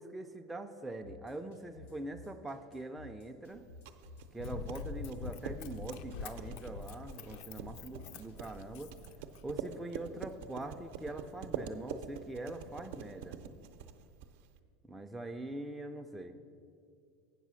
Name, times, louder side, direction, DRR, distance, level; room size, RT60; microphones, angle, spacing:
voice 1, 0.0-3.6 4.3-8.9 9.4-13.4 14.8-16.4, right 2 dB, 5° right, 4 dB, 0.3 m, -43 dB
sound 1, 1.0-8.8, left 2 dB, 85° left, 2.3 m, -54 dB
sound 2, 3.5-14.6, right 8 dB, 70° right, 0.5 m, -45 dB
Run, 4.4-9.7 10.2-10.3, left 5 dB, 60° left, 0.4 m, -45 dB
8.2 x 6.3 x 6.2 m, 2.3 s
supercardioid pair, 160°, 0 cm